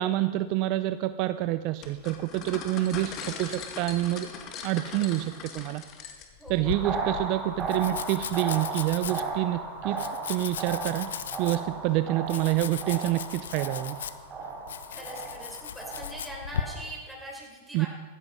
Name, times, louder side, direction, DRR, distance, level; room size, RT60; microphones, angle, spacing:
voice 1, 0.0-4.3 4.6-5.8 6.5-11.1 11.4-14.0 17.7-17.9, right 15 dB, 50° right, 12 dB, 0.6 m, -27 dB
sound 1, 1.8-6.5, left 6 dB, 40° left, 2.2 m, -40 dB
voice 2, 6.4-7.3 14.9-17.9, equal, ahead, -3 dB, 5.1 m, -43 dB
Domestic sounds home sounds, 6.5-16.6, left 8 dB, 80° left, 0.8 m, -38 dB
sound 2, 6.6-16.8, right 4 dB, 25° right, 5.3 m, -36 dB
16.0 x 14.0 x 5.4 m, 1.3 s
hypercardioid pair, 110°, 0 cm